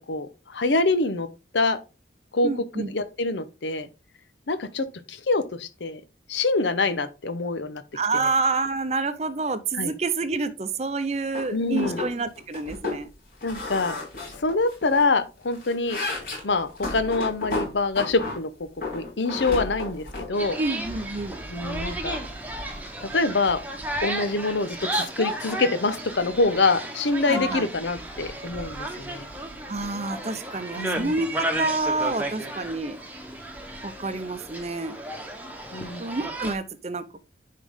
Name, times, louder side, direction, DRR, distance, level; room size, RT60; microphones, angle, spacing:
voice 1, 0.1-1.3 1.5-1.8 2.3-2.5 2.9-3.9 4.5-6.0 6.3-7.8 9.8-9.9 11.5-12.0 13.4-14.0 14.4-16.0 16.4-18.5 18.9-20.6 21.5-22.2 23.0-23.6 24.0-29.3 30.8-31.1 35.7-36.0, left 3 dB, 90° left, 0.8 m, -25 dB
voice 2, 2.4-2.9 7.9-13.1 20.6-21.4 27.3-27.7 29.7-33.0 33.8-34.9 36.0-37.2, right 3 dB, 35° right, 0.6 m, -28 dB
sound 1, 11.3-11.5 11.8-12.1 12.4-13.0 13.4-15.0 15.4-18.4 18.8-20.3, left 3 dB, 50° left, 3.7 m, -32 dB
sound 2, 20.3-36.5, right 1 dB, 10° right, 1.0 m, -33 dB
10.0 x 3.8 x 3.6 m
head